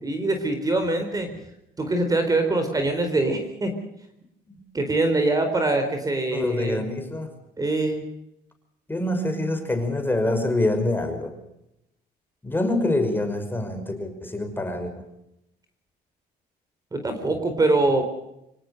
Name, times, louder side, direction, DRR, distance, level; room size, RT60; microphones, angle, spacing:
voice 1, 0.0-1.3 1.8-3.7 4.7-6.8 7.6-8.0 16.9-18.1, right 2 dB, 20° right, 7 dB, 4.2 m, -23 dB
voice 2, 6.3-7.3 8.9-11.3 12.4-15.0, left 1 dB, 10° left, 6 dB, 5.5 m, -25 dB
25.5 x 18.0 x 6.6 m, 0.83 s
cardioid pair, 110°, 17 cm